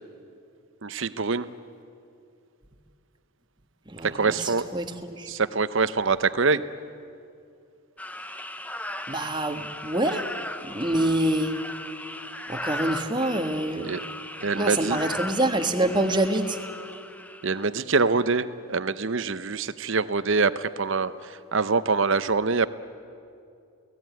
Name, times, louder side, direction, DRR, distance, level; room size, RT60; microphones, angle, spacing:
voice 1, 0.8-1.5 4.0-4.7 5.3-6.6 13.8-14.0 14.4-15.0 17.4-22.7, right 4 dB, 55° right, 14 dB, 0.8 m, -25 dB
voice 2, 3.9-5.3 9.1-10.3 10.6-11.5 12.5-13.9 14.5-16.6, right 1 dB, 20° right, 6 dB, 1.4 m, -26 dB
sound 1, 8.0-17.7, left 1 dB, 5° left, 0.8 m, -37 dB
28.5 x 18.5 x 9.3 m, 2.5 s
head